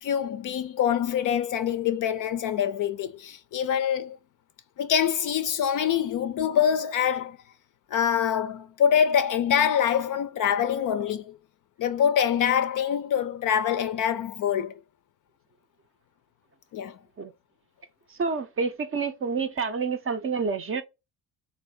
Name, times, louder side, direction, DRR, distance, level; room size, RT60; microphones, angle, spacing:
voice 1, 0.0-4.2 4.8-7.4 7.9-11.4 11.8-14.7 16.7-17.0, left 8 dB, 45° left, 0.5 m, -25 dB
voice 2, 18.1-20.8, right 5 dB, 30° right, 0.5 m, -28 dB
3.3 x 2.4 x 3.6 m
hypercardioid pair, 55°, 48 cm